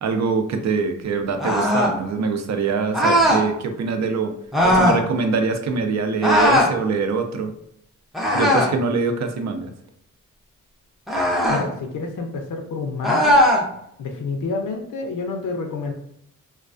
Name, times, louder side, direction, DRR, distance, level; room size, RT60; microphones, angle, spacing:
voice 1, 0.0-4.3 4.6-7.5 8.3-9.7, right 4 dB, 55° right, 6 dB, 0.5 m, -23 dB
sound 1, 1.4-2.0 2.9-3.5 4.5-5.0 6.2-6.7 8.1-8.8 11.1-11.7 13.0-13.6, left 1 dB, ahead, 0.5 m, -18 dB
voice 2, 11.5-13.4 14.0-15.9, left 3 dB, 70° left, 2 dB, 0.5 m, -28 dB
2.3 x 2.2 x 2.4 m, 0.75 s
cardioid pair, 90°, 33 cm